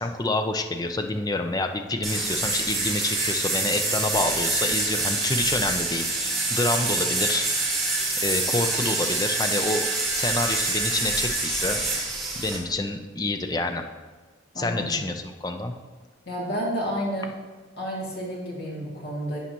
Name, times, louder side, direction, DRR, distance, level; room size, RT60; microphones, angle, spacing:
voice 1, 0.0-7.8 8.2-9.9 10.1-11.8 12.3-13.8 14.5-15.7, left 2 dB, 20° left, 6 dB, 0.4 m, -28 dB
sound 1, 2.0-12.6, right 2 dB, ahead, 2.7 m, -26 dB
voice 2, 14.5-15.0 16.3-17.3 17.8-19.4, equal, 55° left, -4 dB, 2.2 m, -30 dB
11.0 x 8.5 x 2.9 m, 1.3 s
head